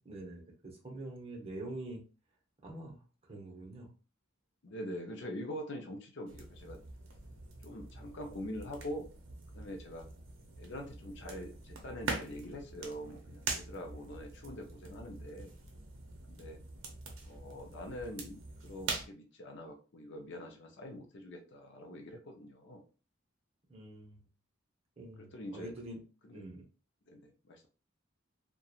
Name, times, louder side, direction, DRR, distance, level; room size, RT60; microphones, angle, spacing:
voice 1, 0.0-2.0 2.6-3.0 3.3-3.9 23.7-24.2 25.0-26.0 26.3-26.6, right 2 dB, 30° right, -1 dB, 0.7 m, -45 dB
voice 2, 4.6-6.8 7.6-9.1 9.5-10.0 10.6-15.6 16.3-16.6 17.2-22.8 25.2-25.7 26.2-26.4 27.1-27.7, equal, 60° left, 3 dB, 0.5 m, -44 dB
sound 1, 6.3-19.1, right 3 dB, 70° right, 0.6 m, -44 dB
2.8 x 2.2 x 2.4 m, 0.36 s
head